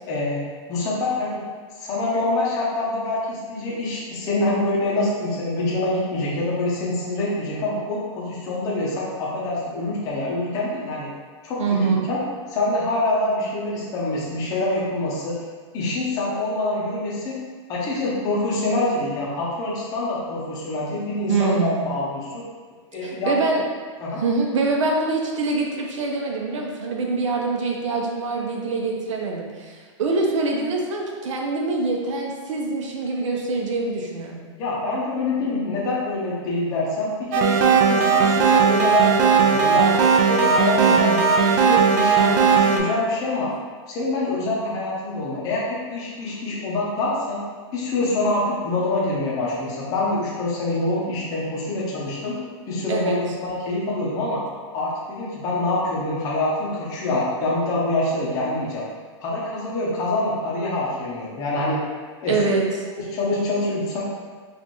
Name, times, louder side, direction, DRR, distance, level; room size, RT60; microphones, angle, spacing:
voice 1, 0.1-0.4 0.7-1.4 1.8-11.1 11.4-12.2 12.5-15.4 15.7-17.4 17.7-22.5 22.9-23.3 24.0-24.2 34.6-40.0 40.3-43.5 43.9-47.4 47.7-52.4 52.7-54.4 54.7-58.8 59.2-61.8 62.2-62.4 63.0-64.0, left 2 dB, 20° left, -6 dB, 0.7 m, -25 dB
voice 2, 11.6-12.0 21.3-21.9 23.0-23.6 24.1-34.5 40.8-41.2 52.9-53.2 62.3-62.6, right 3 dB, 80° right, 0 dB, 0.8 m, -24 dB
sound 1, 37.3-42.8, right 6 dB, 35° right, 0.4 m, -17 dB
4.2 x 2.5 x 3.0 m, 1.5 s
supercardioid pair, 170°, 16 cm